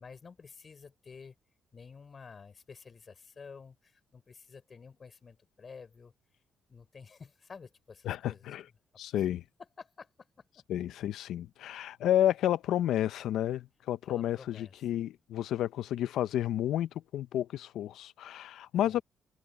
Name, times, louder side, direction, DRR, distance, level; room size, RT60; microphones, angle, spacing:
voice 1, 0.0-1.4 1.7-6.1 6.7-8.5 9.8-10.6 14.1-14.7 18.7-19.0, left 5 dB, 40° left, 4.1 m, -51 dB
voice 2, 8.0-8.6 9.0-9.4 10.7-19.0, left 12 dB, 80° left, 0.7 m, -31 dB
cardioid pair, 90°, 0 cm